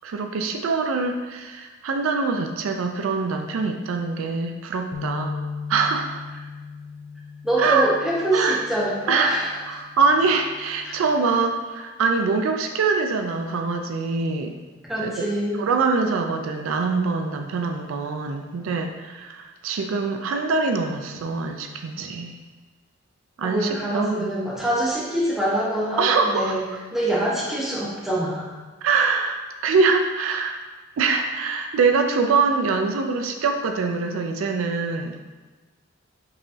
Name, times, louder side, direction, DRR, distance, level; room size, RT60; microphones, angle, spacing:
voice 1, 0.0-5.4 5.7-6.2 7.6-7.9 8.3-8.6 9.1-14.5 15.0-15.1 15.6-22.4 23.4-24.3 26.0-26.6 28.8-30.5 31.0-35.2, right 4 dB, 80° right, 4 dB, 0.4 m, -24 dB
sound 1, 4.9-11.2, left 5 dB, 75° left, 0.5 m, -38 dB
voice 2, 7.4-9.6 10.9-11.0 14.9-15.6 23.4-26.6 26.9-28.6, right 1 dB, ahead, -7 dB, 0.9 m, -25 dB
5.4 x 3.0 x 2.7 m, 1.3 s
head